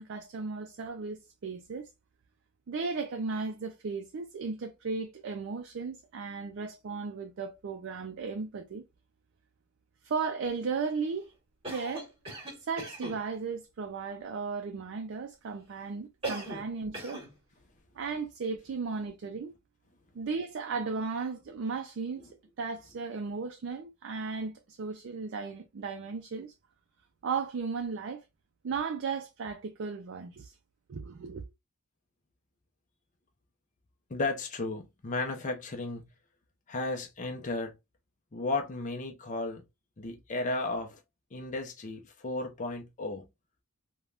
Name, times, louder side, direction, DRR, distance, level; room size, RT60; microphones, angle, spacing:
voice 1, 0.0-1.9 2.7-8.8 10.0-11.3 11.7-12.1 12.6-17.2 18.0-19.5 20.1-22.2 22.6-26.5 27.2-28.2 28.6-30.5 30.9-31.5, right 4 dB, 55° right, 0.4 m, -35 dB
Cough, 11.6-13.2 16.2-16.7 16.9-17.3, right 2 dB, 25° right, 1.2 m, -39 dB
voice 2, 34.1-36.1 36.7-37.7 38.3-39.6 40.0-41.0 41.3-43.2, left 3 dB, 35° left, 0.5 m, -34 dB
3.3 x 2.2 x 2.3 m
head